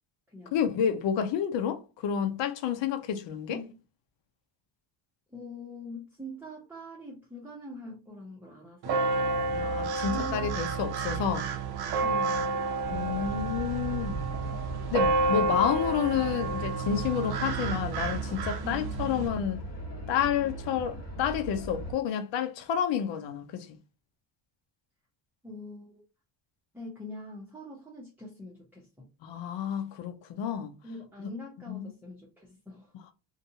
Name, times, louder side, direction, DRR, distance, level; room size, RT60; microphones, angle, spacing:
voice 1, 0.5-3.6 9.5-11.5 12.9-14.3 14.9-19.6 20.1-23.8 29.2-30.7 31.7-31.9, left 8 dB, 70° left, 0.7 m, -30 dB
voice 2, 5.3-9.0 10.0-10.5 12.0-12.6 18.6-18.9 25.4-26.0 26.7-29.1 30.8-32.9, left 1 dB, 5° right, 0.9 m, -43 dB
sound 1, 8.8-19.3, right 3 dB, 55° right, 0.6 m, -30 dB
sound 2, 12.8-21.9, right 1 dB, 35° left, 1.5 m, -39 dB
2.5 x 2.3 x 2.7 m
cardioid pair, 85°, 46 cm